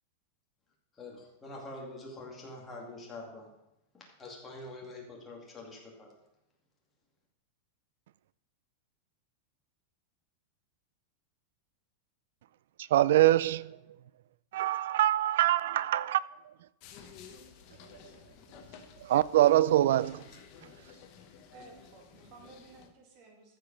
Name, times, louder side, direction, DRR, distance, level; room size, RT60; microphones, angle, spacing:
voice 1, 0.9-3.5 3.9-6.2, left 2 dB, 10° left, 2.1 m, -45 dB
voice 2, 12.8-13.8 14.5-16.5 19.0-20.2, right 13 dB, 70° right, 0.4 m, -24 dB
sound 1, 16.8-22.9, left 7 dB, 35° left, 1.1 m, -53 dB
voice 3, 21.5-23.6, right 3 dB, 35° right, 2.2 m, -54 dB
14.0 x 5.1 x 5.3 m
supercardioid pair, 170°, 0 cm